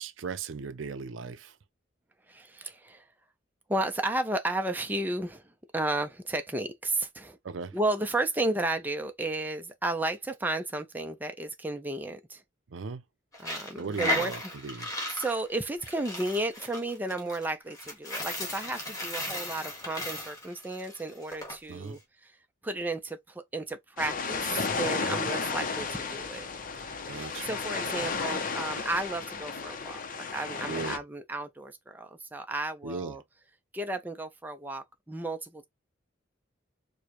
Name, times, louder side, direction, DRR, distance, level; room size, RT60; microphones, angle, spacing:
voice 1, 0.0-1.6 7.4-7.8 12.7-13.0 13.8-14.9 21.7-22.0 25.0-25.2 27.1-27.6 28.0-28.1 30.7-31.0 32.8-33.2, right 5 dB, 90° right, 0.5 m, -38 dB
voice 2, 2.3-3.0 3.7-7.4 7.7-12.4 13.4-14.3 15.2-22.3 22.6-24.5 24.8-26.5 27.1-33.2 33.7-35.6, right 2 dB, 10° right, 0.5 m, -33 dB
Coin (dropping), 13.3-21.6, left 1 dB, 20° left, 1.6 m, -35 dB
sound 1, 24.0-31.0, left 4 dB, 45° left, 0.6 m, -33 dB
4.7 x 2.2 x 2.9 m
head